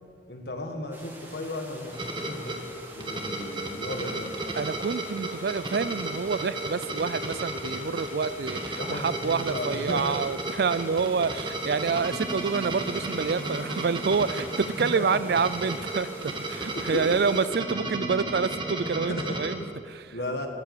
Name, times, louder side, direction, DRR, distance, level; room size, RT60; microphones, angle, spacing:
voice 1, 0.3-2.6 2.9-4.4 8.8-10.0 10.9-11.0 14.9-15.2 16.7-17.0 19.0-19.3 19.6-19.7 20.1-20.5, left 1 dB, 65° left, 4 dB, 1.8 m, -35 dB
sound 1, 0.9-17.5, right 1 dB, 10° right, 1.8 m, -46 dB
sound 2, 1.9-19.5, right 1 dB, 30° right, 1.5 m, -34 dB
voice 2, 4.5-19.6 19.9-20.0, right 5 dB, 60° right, 16 dB, 0.4 m, -28 dB
20.0 x 8.4 x 6.7 m, 2.2 s
head